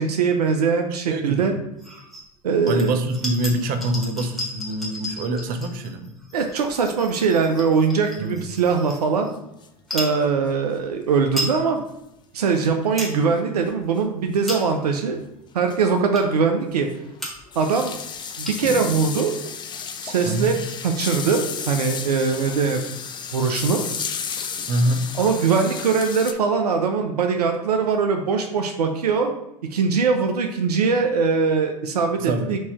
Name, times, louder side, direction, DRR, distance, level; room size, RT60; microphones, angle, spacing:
voice 1, 0.0-1.6 2.4-2.9 6.3-9.3 9.9-11.8 12.3-15.2 15.5-16.9 17.6-17.9 18.4-19.3 20.0-20.5 20.8-22.8 23.3-23.9 25.2-29.3 29.7-32.6, right 5 dB, 90° right, 5 dB, 0.5 m, -21 dB
voice 2, 1.1-1.6 2.7-6.1 8.2-8.4 20.2-20.6 24.7-25.1 32.2-32.6, right 1 dB, 45° right, 6 dB, 0.7 m, -25 dB
sound 1, 1.8-2.3 2.6-9.3 9.8-10.2 10.8-10.9 11.1-11.6 12.0-12.1 12.6-13.2 13.6-13.8 14.3-14.9 15.5-15.6 16.1-16.5 16.9-17.0 17.2-17.6 17.9-18.0 18.2-18.8, equal, ahead, 1.5 m, -34 dB
sound 2, 7.2-7.3 7.6-7.7 7.8-7.9 9.6-9.7 9.9-10.0 11.1-11.2 12.6-12.8 14.0-14.1 14.7-14.8 15.2-15.3 15.7-15.9 16.2-16.3 16.8-26.3, left 7 dB, 25° left, 0.4 m, -33 dB
4.6 x 2.8 x 4.2 m, 0.85 s
hypercardioid pair, 85°, 20 cm